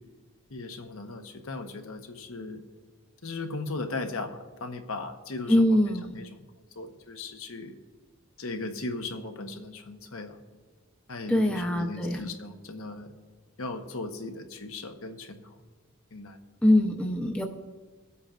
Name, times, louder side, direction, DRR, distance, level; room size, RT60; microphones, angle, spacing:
voice 1, 0.5-2.6 3.2-6.4 6.8-7.8 8.4-10.4 11.1-13.2 13.6-15.5 16.1-16.4, left 3 dB, 70° left, 5 dB, 1.0 m, -37 dB
voice 2, 5.5-6.1 11.3-12.2 16.6-17.4, left 1 dB, 5° left, 1 dB, 0.7 m, -23 dB
24.5 x 8.3 x 2.5 m, 1.3 s
head